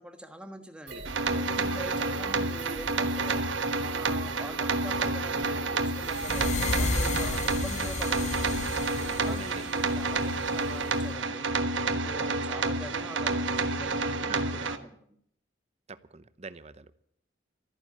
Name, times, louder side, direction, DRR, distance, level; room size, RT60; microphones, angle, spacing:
voice 1, 0.0-6.5 6.8-8.7 9.0-11.5 11.8-15.2, equal, 5° right, 6 dB, 1.5 m, -44 dB
sound 1, 0.9-6.7, right 3 dB, 60° right, 2.4 m, -42 dB
sound 2, 1.0-14.8, right 3 dB, 80° right, 1.3 m, -29 dB
voice 2, 1.7-2.1 9.2-9.7 14.3-14.8 15.9-16.9, right 4 dB, 35° right, 14 dB, 0.7 m, -43 dB
sound 3, 6.0-11.0, left 3 dB, 40° left, 0.7 m, -33 dB
14.0 x 9.3 x 9.4 m, 0.68 s
head